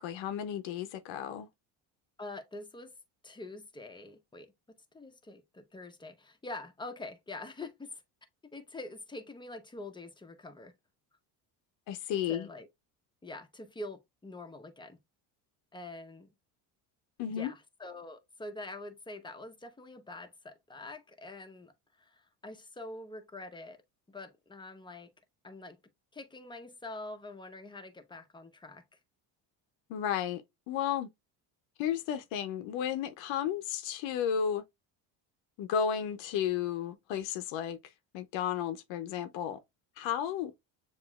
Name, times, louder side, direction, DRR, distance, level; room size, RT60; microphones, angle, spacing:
voice 1, 0.0-1.5 11.9-12.5 17.2-17.5 29.9-31.1 31.8-34.6 35.6-37.8 38.1-39.6 40.0-40.5, left 9 dB, 75° left, 0.7 m, -33 dB
voice 2, 2.2-2.9 3.2-4.5 4.9-8.0 8.5-10.7 12.3-12.7 13.2-15.0 15.7-16.3 17.2-21.7 22.0-23.8 24.1-25.1 25.4-25.8 26.1-28.8, left 2 dB, 10° left, 0.8 m, -45 dB
6.9 x 2.6 x 2.2 m
supercardioid pair, 90°, 46 cm